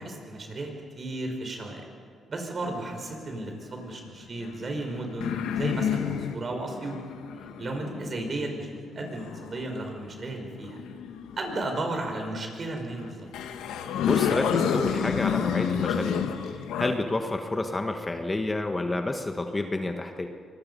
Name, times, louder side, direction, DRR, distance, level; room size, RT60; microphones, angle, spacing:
voice 1, 0.0-1.9 2.3-7.0 7.6-10.8 11.4-13.3 16.7-16.9, right 2 dB, 45° right, 3 dB, 5.0 m, -34 dB
sound 1, 2.6-3.5 4.3-9.8 10.6-12.4 13.0-13.1 13.3-17.0, left 8 dB, 90° left, 1.4 m, -30 dB
voice 2, 14.1-20.3, left 2 dB, 20° left, 5 dB, 1.5 m, -29 dB
24.5 x 20.5 x 5.5 m, 2.1 s
cardioid pair, 75°, 0 cm